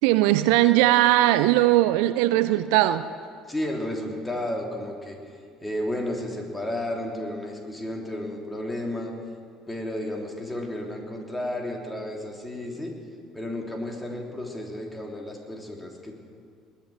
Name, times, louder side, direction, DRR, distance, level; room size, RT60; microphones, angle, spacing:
voice 1, 0.0-3.1, right 15 dB, 65° right, 13 dB, 0.4 m, -19 dB
voice 2, 3.5-5.2 5.6-9.1 9.7-12.9 13.3-16.2, left 1 dB, 15° left, 0 dB, 3.1 m, -32 dB
20.5 x 7.3 x 9.3 m, 2.2 s
figure-of-eight pair, 60°, 0 cm